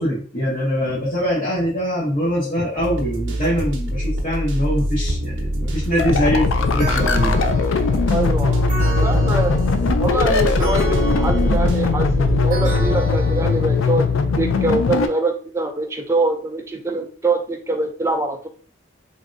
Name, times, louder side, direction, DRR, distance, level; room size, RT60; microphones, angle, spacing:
voice 1, 0.0-7.4, equal, 40° left, -7 dB, 1.0 m, -23 dB
sound 1, 2.8-12.9, right 1 dB, 75° right, 0.6 m, -23 dB
sound 2, 6.0-15.1, left 5 dB, 90° left, 0.4 m, -20 dB
sound 3, 6.8-14.4, right 1 dB, 40° right, 0.7 m, -31 dB
voice 2, 8.1-8.7 9.0-9.5 10.0-14.1 14.4-18.5, right 2 dB, 15° right, 3 dB, 0.4 m, -24 dB
3.2 x 2.6 x 2.5 m, 0.43 s
head